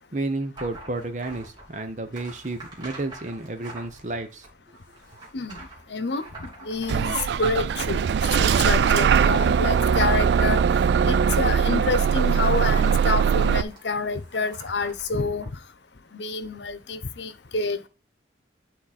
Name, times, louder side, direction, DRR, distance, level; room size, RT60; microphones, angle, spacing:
voice 1, 0.1-4.5, right 2 dB, 45° right, 0.9 m, -31 dB
sound 1, 0.5-15.5, right 2 dB, 25° right, 2.7 m, -46 dB
voice 2, 5.9-8.0 8.4-10.6 11.1-15.4 16.1-17.9, left 3 dB, 80° left, 0.9 m, -28 dB
Bus / Engine starting, 6.9-13.6, right 7 dB, 75° right, 0.3 m, -21 dB
10.0 x 4.1 x 4.2 m
head